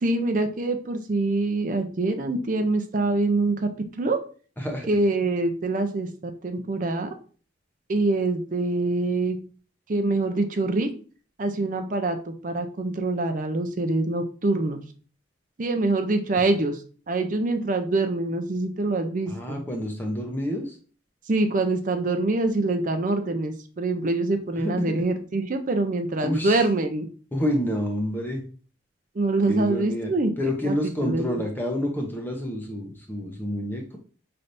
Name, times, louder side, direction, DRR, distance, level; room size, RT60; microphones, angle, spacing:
voice 1, 0.0-3.6 4.0-4.2 4.9-7.1 7.9-9.4 9.9-10.9 11.4-14.8 15.6-16.8 17.1-19.6 21.3-27.0 29.2-31.2, right 2 dB, 45° right, 6 dB, 0.5 m, -25 dB
voice 2, 4.6-4.9 16.4-16.5 19.3-20.8 24.6-24.9 26.2-26.6 27.3-28.4 29.5-34.0, equal, 10° left, 1 dB, 0.7 m, -28 dB
5.6 x 3.3 x 2.6 m, 0.40 s
head